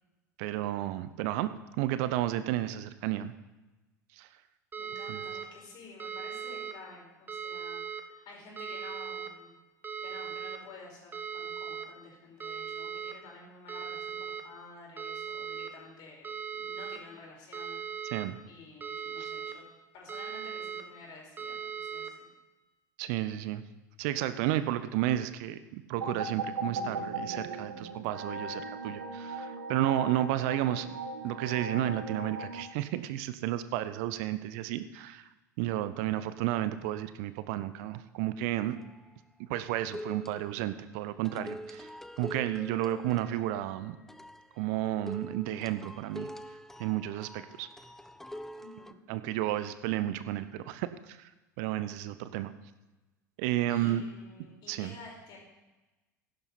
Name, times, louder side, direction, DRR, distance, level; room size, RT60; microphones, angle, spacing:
voice 1, 0.4-3.3 4.2-4.3 5.1-5.2 18.1-18.4 19.2-19.3 23.0-23.6 24.0-31.0 31.2-35.3 35.6-38.8 39.5-41.9 42.2-44.0 44.6-46.3 46.8-47.7 49.1-51.3 51.6-52.5 53.4-54.0 54.7-54.9, right 13 dB, 55° right, 13 dB, 0.7 m, -32 dB
sound 1, 4.7-5.4 6.0-6.7 7.3-8.0 8.6-9.3 9.8-10.6 11.1-11.8 12.4-13.1 13.7-14.4 15.0-15.7 16.2-17.0 17.5-18.3 18.8-19.5 20.1-20.8 21.4-22.1, right 7 dB, 20° right, 1.6 m, -38 dB
voice 2, 4.8-9.6 10.0-18.2 18.5-19.7 19.9-22.2 48.6-49.0 53.7-55.4, left 3 dB, 50° left, -1 dB, 5.5 m, -51 dB
sound 2, 26.0-32.7, right 2 dB, 75° right, 1.1 m, -38 dB
sound 3, 38.6-39.1 39.9-40.8 41.2-48.9, equal, 5° left, 0.6 m, -45 dB
15.5 x 11.5 x 4.2 m, 1.1 s
figure-of-eight pair, 70°, 10 cm